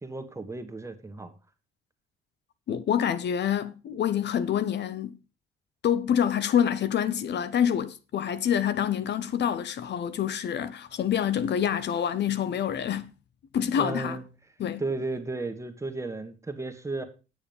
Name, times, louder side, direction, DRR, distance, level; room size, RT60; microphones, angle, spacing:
voice 1, 0.0-1.3 13.7-14.2 14.8-17.0, right 3 dB, 15° right, 1.5 m, -34 dB
voice 2, 2.7-5.2 5.8-13.1 13.5-14.2 14.6-14.8, left 9 dB, 60° left, 0.7 m, -27 dB
9.0 x 7.1 x 5.3 m
cardioid pair, 90°, 20 cm